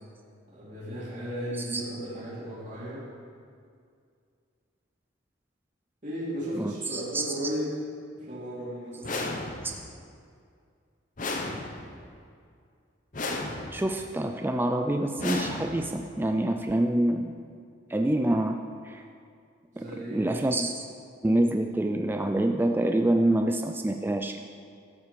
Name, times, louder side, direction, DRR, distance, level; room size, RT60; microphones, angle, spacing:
voice 1, 0.5-3.1 6.0-7.7 8.1-9.3 19.7-20.4, equal, 40° right, -10 dB, 3.1 m, -35 dB
voice 2, 1.5-1.8 6.5-7.5 9.6-9.8 13.7-17.3 17.9-19.0 19.8-20.8 21.2-24.4, right 1 dB, 10° right, 5 dB, 0.3 m, -27 dB
sound 1, 9.0-9.9 11.2-12.1 13.1-14.0 15.2-16.1, left 2 dB, 40° left, 0.9 m, -34 dB
12.0 x 5.7 x 6.8 m, 2.3 s
head